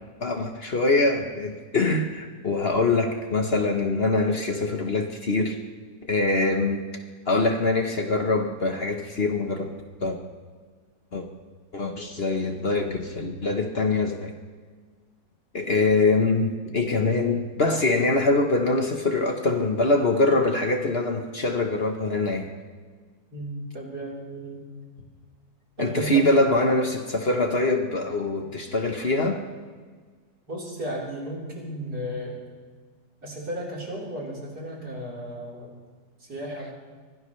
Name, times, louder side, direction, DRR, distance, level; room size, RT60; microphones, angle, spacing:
voice 1, 0.2-5.6 6.0-6.8 7.3-9.8 10.0-10.2 11.1-11.3 11.7-14.3 15.5-22.5 25.8-29.4, left 2 dB, 40° left, 4 dB, 1.3 m, -24 dB
voice 2, 23.3-24.6 25.8-26.3 30.5-32.4 33.2-35.8 36.2-36.7, equal, 70° right, -4 dB, 4.7 m, -34 dB
23.5 x 17.0 x 3.3 m, 1.5 s
omnidirectional pair, 1.7 m